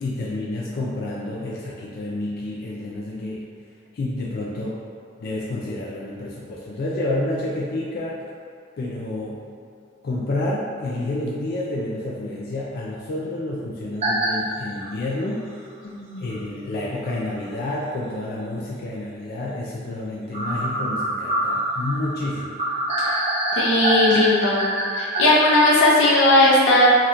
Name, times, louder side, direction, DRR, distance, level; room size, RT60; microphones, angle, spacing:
voice 1, 0.0-3.5 3.9-4.8 5.2-8.2 8.8-9.4 10.0-15.6 16.2-22.6, left 2 dB, 50° left, -5 dB, 0.4 m, -29 dB
sound 1, 14.0-14.3 14.8-14.9 16.3-16.4 17.0-17.1 17.4-17.5 20.3-25.2, right 1 dB, 35° right, 0.5 m, -24 dB
voice 2, 15.8-16.2 23.0-23.1 23.6-24.6 24.9-26.9, left 1 dB, 85° left, -5 dB, 0.7 m, -17 dB
2.8 x 2.3 x 3.5 m, 2.4 s
head